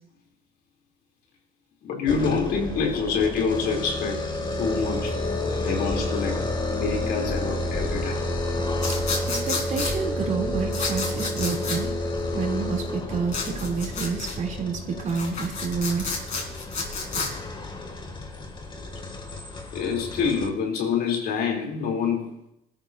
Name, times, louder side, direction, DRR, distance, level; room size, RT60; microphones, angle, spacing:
voice 1, 1.8-4.3 4.6-5.2 5.6-8.2 19.7-22.5, left 5 dB, 70° left, 0 dB, 3.8 m, -27 dB
sound 1, 2.1-20.5, left 1 dB, 30° left, 2.7 m, -30 dB
sound 2, 8.8-9.9 10.7-11.8 13.3-14.4 15.0-17.3, left 4 dB, 45° left, 5.2 m, -30 dB
voice 2, 9.3-11.9 12.3-16.1, right 5 dB, 50° right, 1 dB, 3.6 m, -29 dB
21.5 x 13.5 x 2.9 m, 0.82 s
cardioid pair, 110°, 17 cm